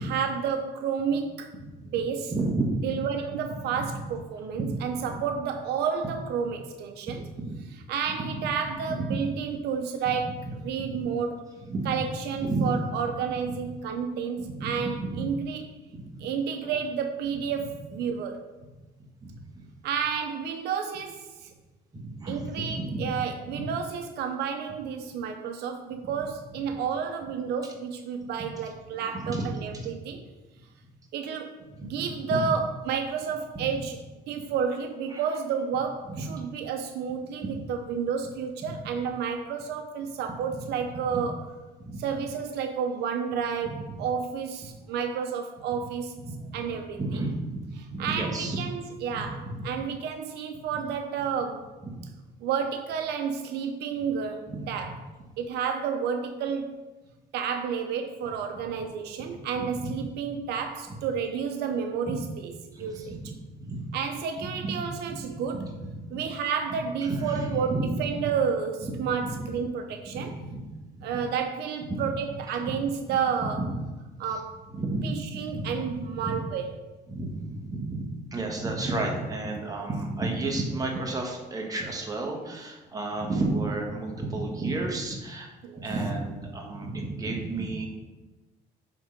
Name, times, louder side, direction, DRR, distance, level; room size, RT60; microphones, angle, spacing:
voice 1, 0.0-1.5 1.9-2.3 2.8-7.2 7.9-11.4 11.9-15.7 16.2-18.4 19.8-21.5 22.3-30.2 31.1-34.0 34.3-41.5 42.0-46.1 46.5-47.2 47.8-51.7 52.4-54.9 55.4-56.8 57.3-63.2 63.9-65.6 66.1-70.4 71.0-73.7 74.2-74.6 75.0-76.7 79.6-79.7 85.6-85.8, right 6 dB, 75° right, 5 dB, 0.6 m, -31 dB
voice 2, 2.3-3.0 3.7-4.0 4.5-5.2 7.3-7.5 8.3-8.4 8.9-9.0 10.1-10.2 11.7-12.1 12.4-12.7 13.5-13.6 14.4-15.3 15.9-16.3 19.2-19.3 21.9-22.4 22.8-22.9 23.5-23.7 26.0-26.1 28.9-29.9 32.3-32.4 35.1-35.2 36.1-36.2 37.4-37.5 38.6-38.8 40.6-40.7 41.1-41.2 41.8-42.0 43.6-44.0 46.3-46.7 47.0-48.6 49.1-49.2 54.5-54.6 59.3-59.4 59.8-59.9 60.9-61.0 62.7-63.8 64.6-65.7 67.0-67.9 68.1-68.3 68.8-68.9 70.1-70.7 71.9-72.0 72.6-72.8 73.4-73.5 74.3-74.4 74.7-76.0 76.2-76.4 77.1-85.5 85.8-87.9, right 2 dB, 20° right, 0 dB, 1.7 m, -32 dB
9.1 x 3.7 x 5.2 m, 1.2 s
cardioid pair, 110°, 17 cm